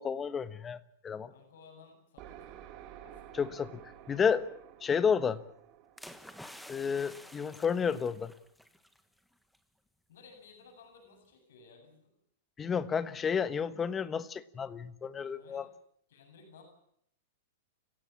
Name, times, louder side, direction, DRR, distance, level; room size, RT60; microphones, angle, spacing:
voice 1, 0.0-1.3 3.4-3.8 4.1-4.4 4.8-5.4 6.7-8.3 12.6-15.7, left 6 dB, 20° left, 14 dB, 1.3 m, -31 dB
voice 2, 1.3-2.5 3.0-3.2 10.1-12.1 15.3-15.7 16.1-16.6, left 5 dB, 70° left, 4 dB, 8.0 m, -57 dB
sound 1, 2.2-7.8, right 11 dB, 40° right, 2.7 m, -52 dB
sound 2, 6.0-9.0 9.3-9.6, equal, ahead, 1.5 m, -51 dB
29.5 x 16.5 x 7.4 m, 0.71 s
hypercardioid pair, 130°, 0 cm